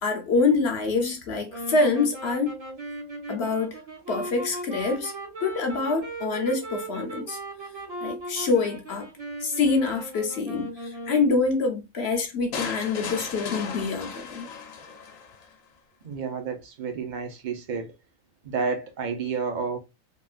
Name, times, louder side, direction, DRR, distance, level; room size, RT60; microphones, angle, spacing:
voice 1, 0.0-2.6 3.3-3.8 4.1-5.1 5.4-7.4 8.0-9.1 9.4-14.5, left 4 dB, 60° left, 0.9 m, -25 dB
sound 1, 1.5-11.5, right 2 dB, 75° right, 1.9 m, -37 dB
sound 2, 12.5-15.5, left 5 dB, 75° left, 1.1 m, -36 dB
voice 2, 16.0-17.9 18.4-19.8, right 5 dB, 45° right, 0.7 m, -30 dB
3.6 x 2.4 x 2.4 m
omnidirectional pair, 1.4 m